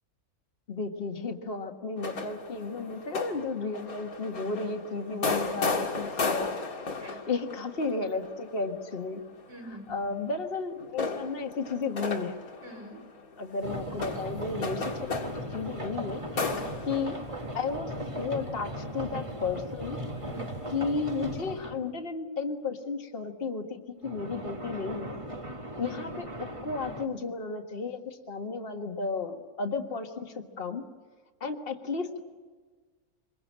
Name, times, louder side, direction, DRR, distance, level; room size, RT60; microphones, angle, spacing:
voice 1, 0.7-9.2 9.6-12.3 13.4-16.2 16.9-17.2 17.5-20.0 20.7-25.2 25.8-30.8 31.4-32.2, left 4 dB, 40° left, 4 dB, 1.8 m, -33 dB
sound 1, 2.0-10.3 10.8-19.6 20.2-20.7, left 4 dB, 75° left, 2.4 m, -36 dB
voice 2, 9.5-10.1 12.6-13.0 16.4-16.7 20.2-20.6 25.9-26.2, right 1 dB, 55° right, 2 dB, 5.4 m, -46 dB
sound 2, 13.6-21.8 24.0-27.1, equal, 20° right, 1.6 m, -38 dB
25.5 x 22.0 x 7.5 m, 1.5 s
omnidirectional pair, 1.5 m